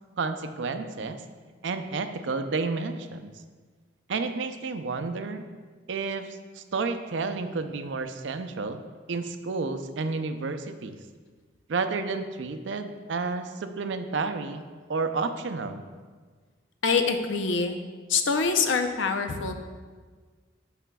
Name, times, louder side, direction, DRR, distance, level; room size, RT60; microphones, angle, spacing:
voice 1, 0.2-1.2 1.6-3.3 4.1-5.4 5.9-8.8 9.1-11.0 11.7-14.6 14.9-15.9, right 4 dB, 75° right, 8 dB, 0.5 m, -31 dB
voice 2, 16.8-17.8 18.1-19.5, left 5 dB, 80° left, 6 dB, 0.6 m, -25 dB
12.5 x 5.0 x 2.3 m, 1.5 s
head